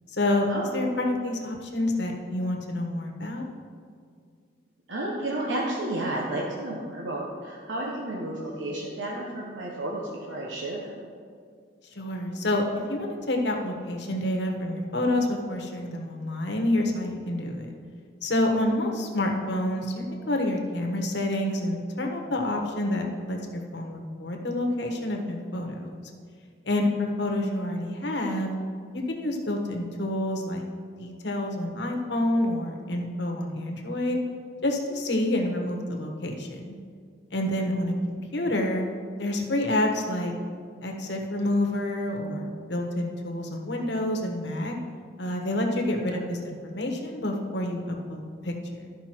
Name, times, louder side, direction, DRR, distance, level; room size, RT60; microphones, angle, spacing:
voice 1, 0.1-3.5 11.9-12.6 12.9-17.7 18.2-25.9 26.6-28.5 29.1-30.6 31.0-34.2 34.6-36.8 37.3-38.9 39.2-40.3 40.8-44.7 45.2-48.5, left 1 dB, 70° left, 2 dB, 1.2 m, -28 dB
voice 2, 4.9-10.9, right 1 dB, 80° right, -3 dB, 1.0 m, -32 dB
13.0 x 5.4 x 4.5 m, 2.1 s
head